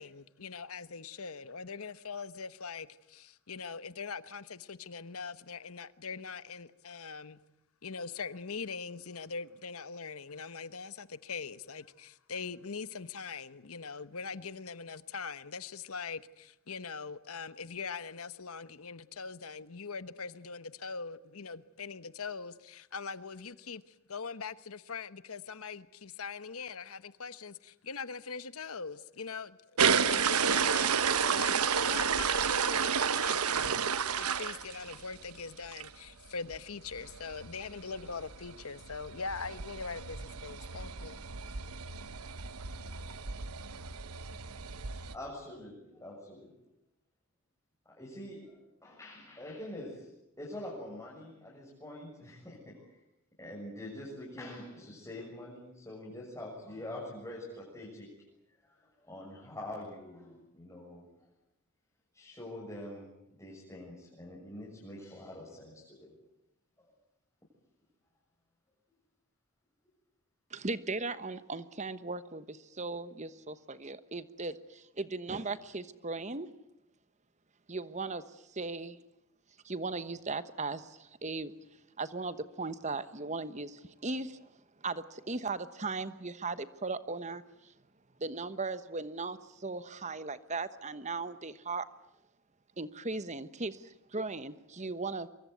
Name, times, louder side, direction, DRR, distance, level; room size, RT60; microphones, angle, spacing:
voice 1, 0.0-7.4 7.8-29.6 30.0-33.8 34.2-41.2, left 5 dB, 75° left, 1.1 m, -42 dB
sound 1, 29.8-35.2 35.7-35.9 36.3-36.4 36.5-36.6 36.9-45.2, right 6 dB, 85° right, 1.1 m, -31 dB
voice 2, 44.8-46.5 47.9-48.6 48.8-50.1 50.4-53.0 53.4-58.1 58.6-61.1 62.1-63.1 63.4-66.1, left 1 dB, 15° left, 7.0 m, -45 dB
voice 3, 70.5-76.5 77.7-79.0 79.6-81.5 82.0-84.5 84.8-87.7 88.2-91.9 92.8-95.3, right 3 dB, 30° right, 1.1 m, -38 dB
24.5 x 23.0 x 9.3 m
head